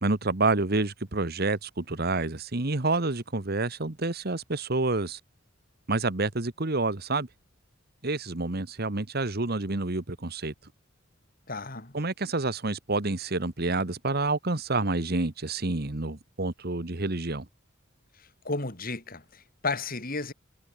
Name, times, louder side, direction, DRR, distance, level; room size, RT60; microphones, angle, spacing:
voice 1, 0.0-5.2 5.9-7.3 8.0-10.5 11.9-17.5, right 3 dB, 50° right, 1.4 m, -28 dB
voice 2, 11.5-12.0 18.4-20.3, left 3 dB, 45° left, 3.8 m, -33 dB
head